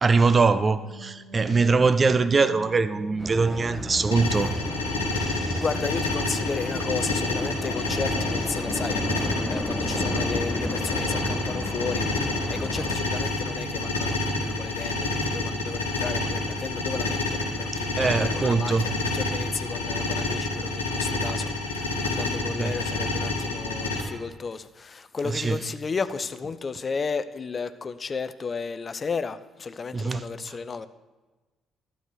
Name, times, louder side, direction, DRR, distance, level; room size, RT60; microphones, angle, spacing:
voice 1, 0.0-4.5 5.2-5.6 17.7-18.9 22.6-22.8 25.2-25.6 29.9-30.3, right 4 dB, 30° right, 0.5 m, -23 dB
sound 1, 0.8-20.0, right 4 dB, 55° right, 2.3 m, -46 dB
sound 2, 3.2-13.0, left 1 dB, 15° left, 1.2 m, -33 dB
sound 3, 4.1-24.0, left 2 dB, 80° left, 1.0 m, -28 dB
voice 2, 5.5-30.9, left 5 dB, 35° left, 0.5 m, -34 dB
12.0 x 7.9 x 4.6 m
figure-of-eight pair, 45°, 0 cm